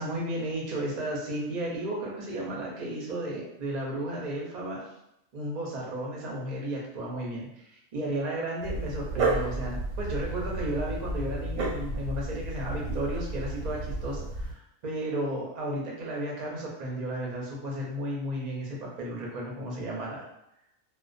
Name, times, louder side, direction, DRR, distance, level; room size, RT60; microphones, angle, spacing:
voice 1, 0.0-4.8 5.3-20.3, right 1 dB, 50° right, -3 dB, 0.5 m, -33 dB
Dog, 8.6-14.5, right 2 dB, 85° right, 1.1 m, -32 dB
2.3 x 2.2 x 2.4 m, 0.82 s
omnidirectional pair, 1.4 m